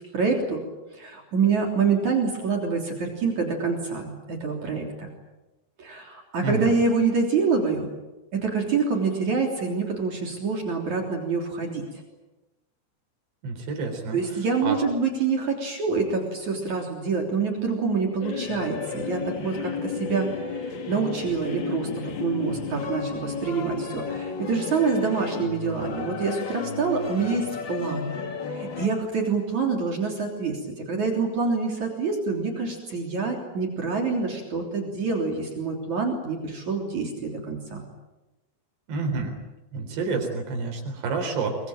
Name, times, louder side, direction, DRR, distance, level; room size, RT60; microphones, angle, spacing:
voice 1, 0.1-0.6 0.9-5.1 5.8-7.9 8.3-11.8 14.1-28.2 28.5-37.9, right 4 dB, 45° right, 1 dB, 4.5 m, -26 dB
voice 2, 6.4-6.7 13.4-14.2 14.6-14.8 38.9-39.4 39.7-41.6, right 4 dB, 85° right, 3 dB, 6.1 m, -28 dB
Bach at St. Paul's Chapel, 18.2-28.9, left 5 dB, 55° left, 1.3 m, -33 dB
24.0 x 23.5 x 8.9 m, 1.0 s
omnidirectional pair, 4.8 m